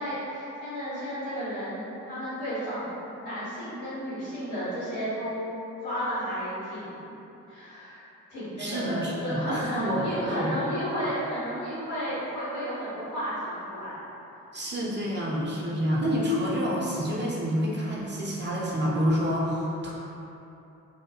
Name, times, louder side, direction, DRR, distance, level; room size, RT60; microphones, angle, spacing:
voice 1, 0.0-2.9 3.2-5.5 5.8-7.2 7.5-8.0 8.3-14.0, equal, 85° left, -12 dB, 1.4 m, -32 dB
voice 2, 8.6-10.5 14.5-19.9, equal, 25° right, -5 dB, 0.6 m, -28 dB
2.7 x 2.2 x 2.7 m, 3.0 s
hypercardioid pair, 40°, 40 cm